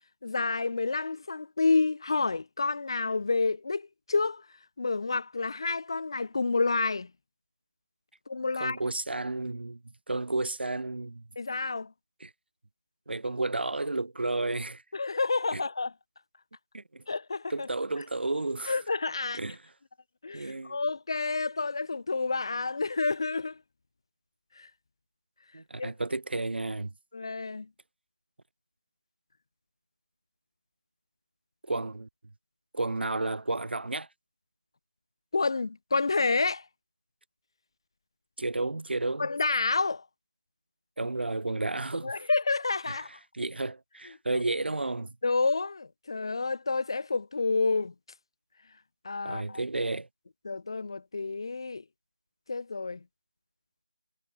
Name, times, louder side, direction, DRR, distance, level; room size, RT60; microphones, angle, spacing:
voice 1, 0.2-4.5 4.8-7.1 8.3-8.8 11.4-11.9 14.9-15.9 17.1-17.7 18.7-19.4 20.2-23.6 24.6-24.7 25.8-25.9 27.1-27.7 35.3-36.6 39.2-40.0 42.0-43.1 45.2-47.9 49.0-49.6 50.4-51.8 52.5-53.0, left 3 dB, 25° left, 0.5 m, -29 dB
voice 2, 8.6-9.8 10.1-11.2 12.2-12.3 13.1-14.8 15.5-15.6 16.7-17.0 17.5-18.8 19.3-19.6 20.3-20.8 25.5-26.9 31.6-32.1 32.7-34.1 38.4-39.3 41.0-42.2 42.9-45.2 49.2-50.1, right 2 dB, 75° right, 1.2 m, -32 dB
figure-of-eight pair, 175°, 6 cm